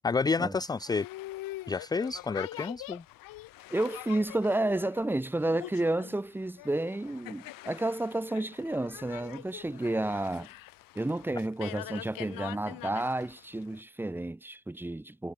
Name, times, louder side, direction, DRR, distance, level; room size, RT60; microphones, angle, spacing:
voice 1, 0.0-1.1 1.7-3.0, left 4 dB, 10° left, 0.5 m, -29 dB
Boat Water vehicle, 0.7-13.8, left 17 dB, 80° left, 4.8 m, -44 dB
voice 2, 3.7-10.5 10.9-15.3, right 1 dB, 5° right, 1.1 m, -31 dB
cardioid pair, 150°, 33 cm